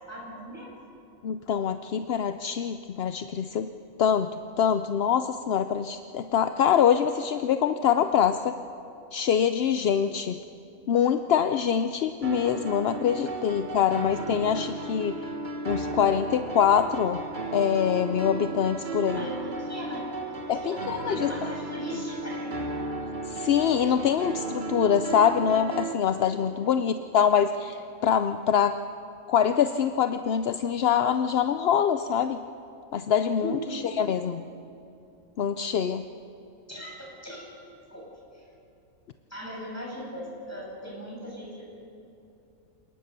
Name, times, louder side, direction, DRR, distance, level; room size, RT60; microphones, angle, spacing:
voice 1, 0.1-0.7 18.9-22.5 33.4-33.8 36.7-37.5 37.9-38.1 38.3-38.4 39.3-41.7, equal, 10° left, -4 dB, 6.9 m, -38 dB
voice 2, 1.2-3.7 4.0-8.6 9.1-10.4 10.9-15.3 15.6-17.2 17.5-19.2 20.5-21.3 23.3-28.8 29.3-32.4 32.9-34.4 35.4-36.1, left 8 dB, 60° left, 10 dB, 0.7 m, -24 dB
sound 1, 12.2-25.9, right 2 dB, 35° right, 1.5 m, -34 dB
27.5 x 19.0 x 6.8 m, 2.7 s
omnidirectional pair, 1.5 m